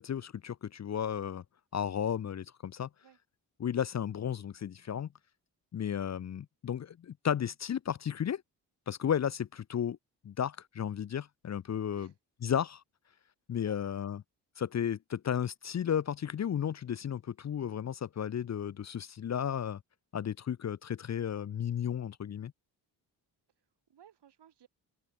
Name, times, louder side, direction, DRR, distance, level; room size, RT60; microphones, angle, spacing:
voice 1, 0.0-1.4 1.7-2.9 3.6-5.1 5.7-8.4 8.9-10.0 10.2-12.1 12.4-12.8 13.5-14.2 14.6-19.8 20.1-22.5, left 9 dB, 40° left, 0.6 m, -33 dB
voice 2, 23.6-24.7, right 9 dB, 75° right, 6.2 m, -59 dB
open air
cardioid pair, 60°, 42 cm